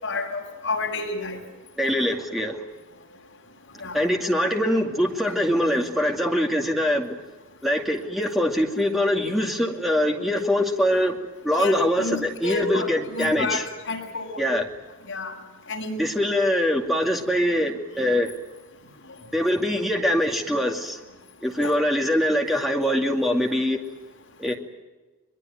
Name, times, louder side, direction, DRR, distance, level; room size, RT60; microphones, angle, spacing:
voice 1, 0.0-1.4 3.8-4.0 11.5-14.4 15.1-15.3 15.7-16.0 21.6-21.7, left 3 dB, 60° left, 0 dB, 6.9 m, -30 dB
voice 2, 1.8-2.6 3.9-7.1 7.6-11.2 11.4-13.7 14.4-14.6 16.0-18.3 19.3-21.0 21.4-23.8 24.4-24.5, left 1 dB, ahead, 1 dB, 2.4 m, -23 dB
23.0 x 22.0 x 9.3 m, 1.2 s
head